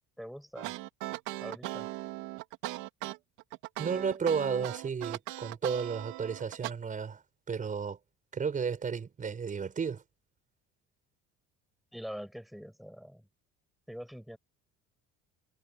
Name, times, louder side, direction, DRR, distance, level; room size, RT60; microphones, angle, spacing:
voice 1, 0.2-0.7 1.4-1.9 11.9-13.3 13.9-14.4, equal, ahead, 7.0 m, -44 dB
sound 1, 0.6-6.7, right 18 dB, 85° right, 2.9 m, -39 dB
voice 2, 3.8-7.2 7.5-8.0 8.3-10.0, right 6 dB, 25° right, 6.0 m, -33 dB
cardioid pair, 140°, 29 cm